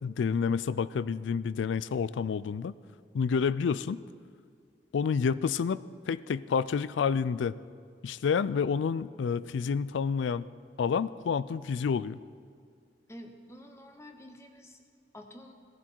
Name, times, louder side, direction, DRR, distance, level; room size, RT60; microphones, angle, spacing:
voice 1, 0.0-2.7 3.1-4.0 4.9-5.8 6.1-7.5 8.0-10.5 10.8-12.2, left 6 dB, 85° left, 17 dB, 0.4 m, -29 dB
voice 2, 13.1-14.8 15.1-15.5, equal, 15° left, 4 dB, 1.0 m, -48 dB
16.5 x 11.0 x 4.6 m, 2.2 s
head